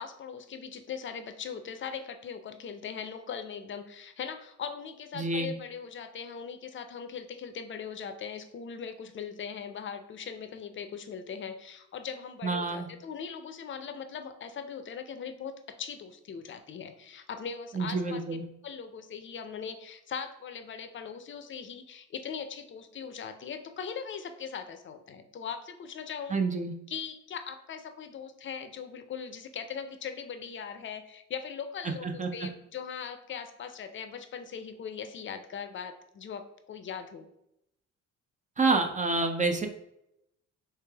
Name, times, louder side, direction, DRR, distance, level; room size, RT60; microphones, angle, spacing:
voice 1, 0.0-18.2 18.6-26.4 26.9-37.3, left 7 dB, 40° left, 8 dB, 0.5 m, -40 dB
voice 2, 5.2-5.5 12.4-12.9 17.7-18.4 26.3-26.7 31.8-32.5 38.6-39.7, right 3 dB, 25° right, 5 dB, 0.4 m, -28 dB
3.3 x 3.3 x 3.3 m, 0.81 s
cardioid pair, 90°, 30 cm